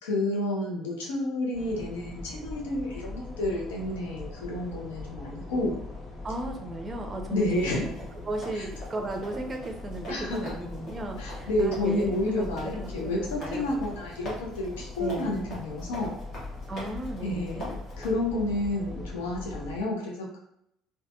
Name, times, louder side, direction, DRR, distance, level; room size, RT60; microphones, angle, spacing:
voice 1, 0.0-5.8 7.3-7.8 8.6-8.7 10.1-10.4 11.2-16.2 17.2-20.4, left 1 dB, 70° left, -2 dB, 0.6 m, -30 dB
sound 1, 1.5-19.8, left 2 dB, 20° left, 1.4 m, -41 dB
voice 2, 6.2-7.9 8.3-13.8 15.0-15.4 16.7-17.7, right 2 dB, 30° right, 4 dB, 0.5 m, -36 dB
sound 2, 7.6-18.1, equal, 45° left, 1.1 m, -43 dB
3.2 x 2.1 x 2.5 m, 0.77 s
figure-of-eight pair, 55°, 0 cm